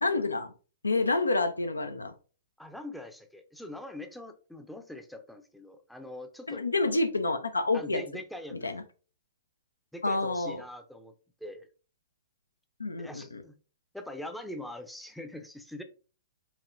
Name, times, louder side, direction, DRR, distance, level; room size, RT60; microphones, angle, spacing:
voice 1, 0.0-0.5 0.8-2.1 6.5-8.0 8.5-8.8 10.0-10.6 12.8-13.4, left 3 dB, 85° left, 10 dB, 0.5 m, -28 dB
voice 2, 2.6-6.7 7.7-8.7 9.9-11.1 11.4-11.7 13.0-13.5 13.9-15.8, left 1 dB, ahead, 6 dB, 0.5 m, -43 dB
4.7 x 2.8 x 2.5 m, 0.37 s
figure-of-eight pair, 115°, 0 cm